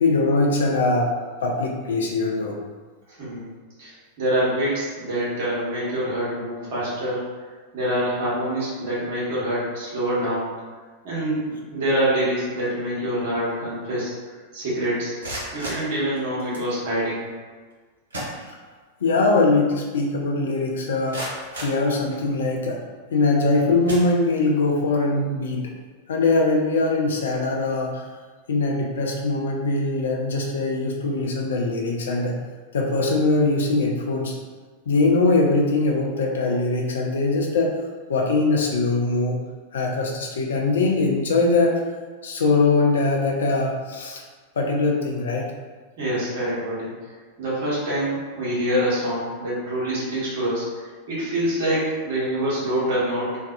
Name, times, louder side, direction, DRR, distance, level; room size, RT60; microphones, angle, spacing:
voice 1, 0.0-1.1 1.4-2.6 19.0-22.8 23.1-25.6 26.1-28.0 28.5-32.4 32.7-34.3 34.9-37.7 38.1-39.4 39.7-41.8 42.2-44.2 44.6-45.5, left 3 dB, 65° left, 0 dB, 0.4 m, -22 dB
voice 2, 3.2-3.5 3.8-7.2 7.7-10.5 11.0-14.2 14.5-15.1 15.5-17.3 46.0-46.9 47.4-53.4, right 1 dB, 55° right, -8 dB, 1.1 m, -25 dB
sound 1, 15.0-16.7 17.7-17.8 18.1-19.0 19.4-19.5 20.0-20.1 20.7-22.5 23.2-23.4 23.8-24.7, right 1 dB, 70° right, 0.7 m, -35 dB
2.5 x 2.2 x 2.4 m, 1.5 s
figure-of-eight pair, 90°, 0 cm